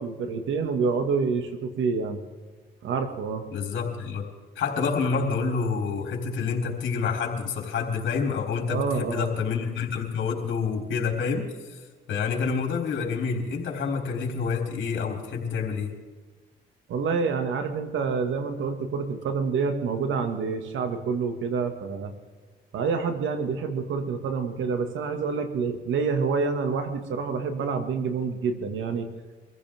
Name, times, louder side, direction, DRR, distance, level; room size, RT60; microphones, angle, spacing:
voice 1, 0.0-2.2 2.8-3.5 8.7-9.4 16.9-22.1 22.7-29.1, right 5 dB, 75° right, 6 dB, 2.2 m, -27 dB
voice 2, 3.5-4.3 4.6-15.9, left 5 dB, 70° left, 1 dB, 3.9 m, -28 dB
24.0 x 15.5 x 3.7 m, 1.4 s
cardioid pair, 90°, 20 cm